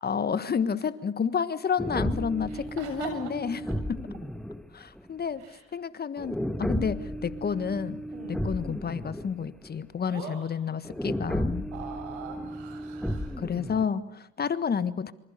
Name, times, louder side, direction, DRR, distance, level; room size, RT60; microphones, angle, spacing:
voice 1, 0.0-3.6 3.9-4.0 4.7-8.0 8.3-11.7 13.4-15.1, left 6 dB, 30° left, 14 dB, 1.5 m, -30 dB
sound 1, 1.8-5.1 6.2-9.3 9.6-9.7 10.8-13.9, equal, ahead, 1.3 m, -33 dB
voice 2, 2.5-3.5 5.4-5.6 8.1-8.4 10.1-10.7 11.7-13.4, right 5 dB, 85° right, 7 dB, 7.2 m, -42 dB
26.5 x 25.5 x 6.8 m, 0.79 s
supercardioid pair, 85°, 34 cm